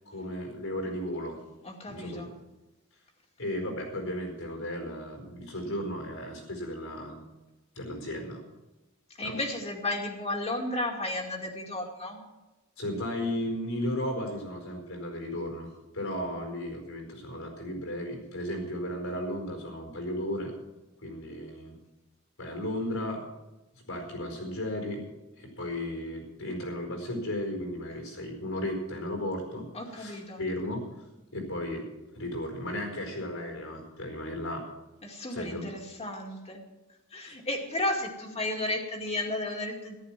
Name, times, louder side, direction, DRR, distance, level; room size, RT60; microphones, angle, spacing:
voice 1, 0.1-1.4 1.9-2.2 3.4-7.2 7.8-8.4 9.2-9.4 12.8-15.7 15.9-20.5 21.0-21.8 22.4-23.2 23.9-25.0 25.4-29.7 29.9-30.8 31.3-31.8 32.1-34.6 35.3-35.7 37.2-37.3, left 1 dB, 75° left, 3 dB, 4.6 m, -35 dB
voice 2, 1.6-2.3 9.2-12.2 29.7-30.4 35.0-36.6 37.1-39.9, left 1 dB, 30° left, 2 dB, 2.3 m, -33 dB
14.0 x 12.0 x 6.0 m, 1.1 s
head